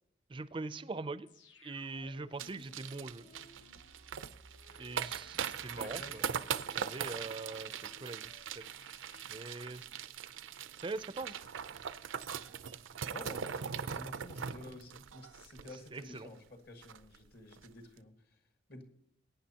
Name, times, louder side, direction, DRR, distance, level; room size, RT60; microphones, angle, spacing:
voice 1, 0.3-1.3 1.6-3.3 4.8-6.2 6.7-8.3 8.6-8.7 9.3-9.8 10.8-11.4 15.9-16.3, right 3 dB, 25° right, 15 dB, 0.4 m, -42 dB
sound 1, 1.3-12.1 12.4-12.5, left 2 dB, 75° left, 1.1 m, -61 dB
sound 2, 2.4-16.2 16.5-16.6 16.8-17.2 17.5-17.7, right 7 dB, 90° right, 0.5 m, -41 dB
voice 2, 5.6-6.2 13.0-18.1 18.7-18.8, left 2 dB, 55° left, 4 dB, 1.7 m, -50 dB
21.0 x 9.4 x 2.9 m, 0.77 s
head